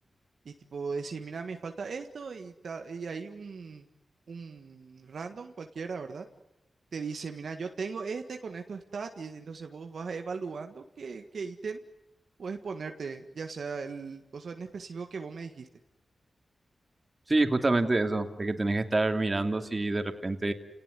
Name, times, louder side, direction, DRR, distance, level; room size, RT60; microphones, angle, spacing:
voice 1, 0.4-3.9 4.3-6.2 6.9-11.8 12.4-15.7, right 5 dB, 75° right, 5 dB, 1.6 m, -38 dB
voice 2, 17.3-20.5, right 2 dB, 35° right, 6 dB, 2.8 m, -27 dB
30.0 x 18.5 x 8.2 m, 0.95 s
cardioid pair, 55°, 0 cm